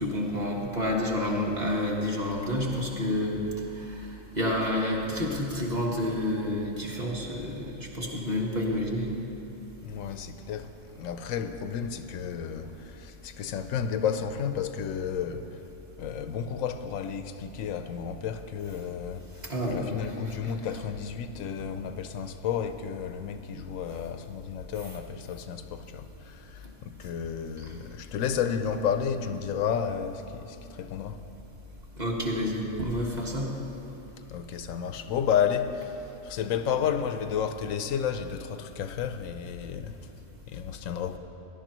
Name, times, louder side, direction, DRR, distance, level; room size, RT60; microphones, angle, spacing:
voice 1, 0.0-3.4 3.7-4.1 4.3-9.1 19.4-20.3 23.5-23.6 27.6-27.7 32.0-33.5, left 1 dB, 35° right, 1.4 m, -29 dB
voice 2, 9.8-15.6 16.0-31.2 34.3-40.0 40.5-41.2, left 7 dB, 90° left, 1.0 m, -32 dB
17.0 x 11.0 x 3.0 m
omnidirectional pair, 1.4 m